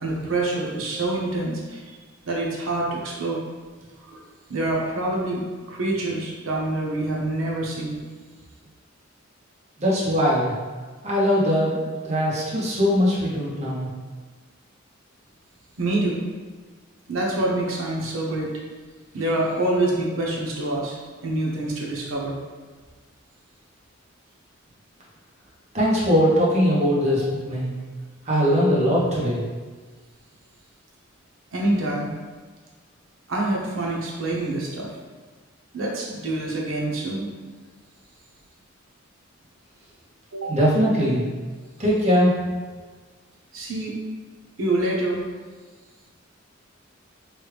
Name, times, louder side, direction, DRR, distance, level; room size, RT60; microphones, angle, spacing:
voice 1, 0.0-2.0 2.2-3.4 4.0-4.2 4.5-8.0 15.8-16.2 17.1-18.6 19.1-20.9 21.2-22.4 31.5-32.1 33.3-35.0 35.7-37.3 40.3-40.6 43.5-44.0 44.6-45.2, right 2 dB, 80° right, -2 dB, 0.7 m, -26 dB
voice 2, 9.8-10.5 11.0-13.9 25.7-27.7 28.2-29.4 40.5-41.2 41.8-42.3, equal, 35° right, -6 dB, 0.9 m, -21 dB
3.1 x 2.3 x 3.2 m, 1.4 s
head